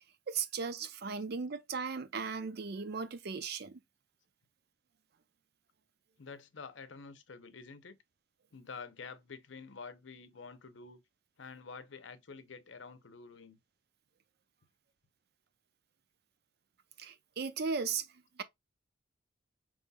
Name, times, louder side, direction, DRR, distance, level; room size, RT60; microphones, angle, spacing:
voice 1, 0.3-3.8 17.0-18.1 18.4-18.5, right 5 dB, 55° right, 0.5 m, -37 dB
voice 2, 6.2-8.0 8.5-11.0 11.4-13.6, left 5 dB, 75° left, 0.7 m, -48 dB
5.4 x 3.1 x 2.2 m
head